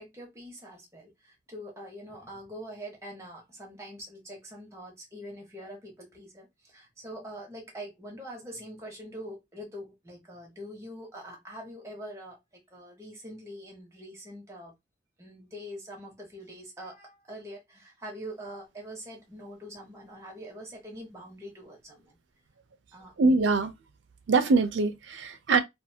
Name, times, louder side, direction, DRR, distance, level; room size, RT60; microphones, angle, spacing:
voice 1, 0.0-14.7 15.2-22.2 22.9-23.1, equal, 15° right, 1.0 m, -44 dB
voice 2, 23.2-23.7 24.3-25.6, right 3 dB, 85° right, 0.5 m, -23 dB
2.5 x 2.4 x 2.7 m
head